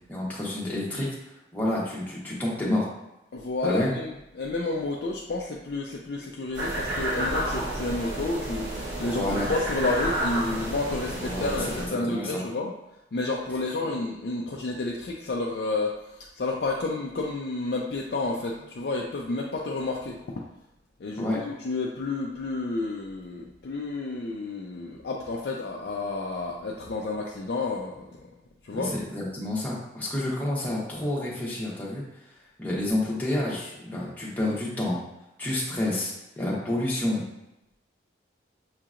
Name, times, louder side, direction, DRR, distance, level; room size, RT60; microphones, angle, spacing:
voice 1, 0.1-2.9 3.6-3.9 9.1-9.5 11.3-12.4 21.2-21.4 28.7-32.0 32.6-35.0 35.4-37.3, left 1 dB, 10° left, -6 dB, 1.0 m, -29 dB
voice 2, 3.3-12.7 13.1-20.4 21.0-28.2 28.6-28.9, left 2 dB, 55° left, -2 dB, 0.4 m, -30 dB
sound 1, 6.5-11.9, right 1 dB, 85° right, 1.3 m, -30 dB
6.4 x 2.9 x 2.5 m, 0.90 s
head